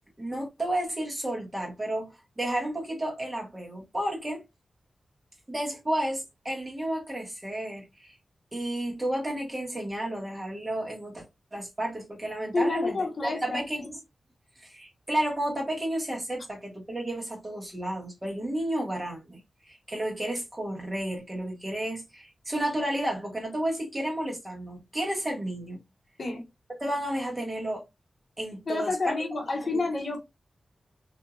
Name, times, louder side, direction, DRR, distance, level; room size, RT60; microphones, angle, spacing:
voice 1, 0.2-4.4 5.5-8.1 8.5-11.2 11.5-14.0 14.6-25.8 26.8-27.8 28.4-29.2 29.7-29.8, right 1 dB, 20° right, 1.2 m, -32 dB
voice 2, 12.5-13.9 26.2-26.4 28.7-30.2, left 3 dB, 55° left, 0.8 m, -29 dB
2.7 x 2.5 x 2.3 m
wide cardioid pair, 105°, 0 cm